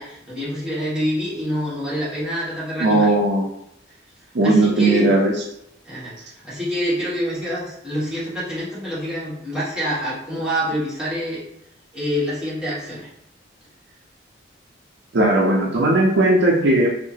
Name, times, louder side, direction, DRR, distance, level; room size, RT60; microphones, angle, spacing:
voice 1, 0.0-3.1 4.4-5.1 5.8-11.4 11.9-13.1, equal, 5° right, -10 dB, 1.3 m, -26 dB
voice 2, 2.8-3.5 4.3-5.3 15.1-16.9, right 2 dB, 60° right, -1 dB, 0.5 m, -17 dB
2.7 x 2.5 x 2.8 m, 0.76 s
head